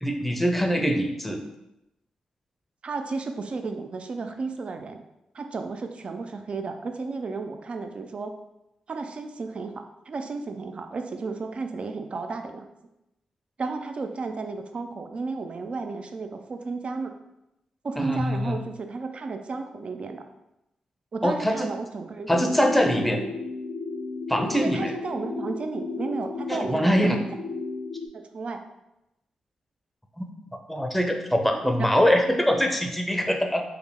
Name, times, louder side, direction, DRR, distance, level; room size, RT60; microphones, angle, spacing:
voice 1, 0.0-1.4 18.0-18.6 21.2-21.7 22.3-23.2 24.3-24.9 26.5-27.2 30.2-30.3 30.7-33.6, equal, 5° left, 3 dB, 0.6 m, -23 dB
voice 2, 2.8-5.0 5.3-8.3 8.9-12.6 13.6-17.1 17.8-20.2 21.1-22.4 23.1-23.3 24.6-27.2 28.1-28.6 31.8-31.9, right 4 dB, 55° right, 6 dB, 0.4 m, -33 dB
sound 1, 22.3-28.1, left 3 dB, 80° left, 0.3 m, -34 dB
3.4 x 2.1 x 3.5 m, 0.89 s
cardioid pair, 50°, 2 cm